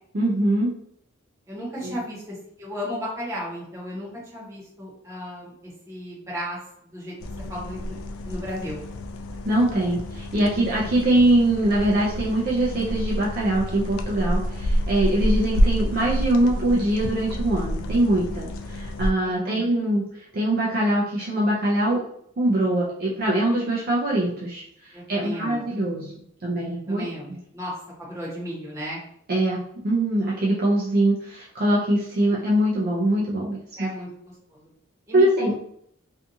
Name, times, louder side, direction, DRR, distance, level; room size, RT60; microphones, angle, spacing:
voice 1, 0.1-0.7 1.8-2.0 9.4-22.0 22.4-26.1 26.4-27.0 29.3-33.9 35.1-35.5, right 1 dB, 45° right, -5 dB, 0.5 m, -23 dB
voice 2, 1.5-6.6 6.9-7.2 7.5-7.9 8.2-8.8 19.2-19.6 24.9-25.7 26.9-27.7 28.0-29.0 33.7-34.6 35.1-35.5, equal, 15° right, -7 dB, 1.0 m, -34 dB
sound 1, 7.2-19.1, equal, 90° left, 0.3 m, -28 dB
2.6 x 2.4 x 2.6 m, 0.68 s
head